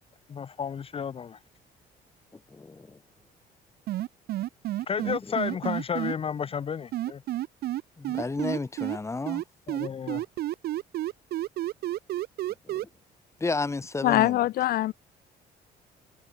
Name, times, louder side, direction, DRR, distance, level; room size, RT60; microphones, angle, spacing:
voice 1, 0.3-1.4 4.9-7.2 9.7-10.2, left 7 dB, 35° left, 0.8 m, -32 dB
voice 2, 2.5-3.0 5.0-5.1 8.0-9.4 12.7-12.8 13.4-14.4, left 3 dB, 15° left, 1.5 m, -32 dB
sound 1, 3.9-6.1 6.9-9.0 9.3-12.8, right 14 dB, 70° right, 1.3 m, -30 dB
voice 3, 14.0-14.9, left 15 dB, 60° left, 0.5 m, -23 dB
cardioid pair, 110°, 17 cm